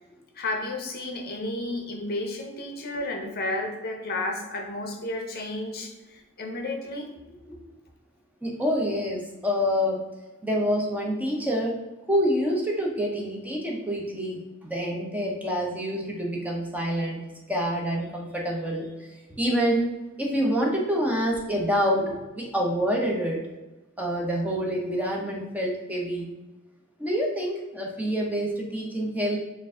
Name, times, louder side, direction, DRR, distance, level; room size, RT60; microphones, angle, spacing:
voice 1, 0.4-7.1, left 2 dB, 45° left, 3 dB, 0.7 m, -32 dB
voice 2, 8.4-10.0 10.4-11.8 12.1-17.2 17.5-19.1 19.4-19.9 20.2-23.4 24.0-26.3 27.0-29.4, equal, 5° right, -1 dB, 0.8 m, -27 dB
4.4 x 2.6 x 3.7 m, 1.1 s
head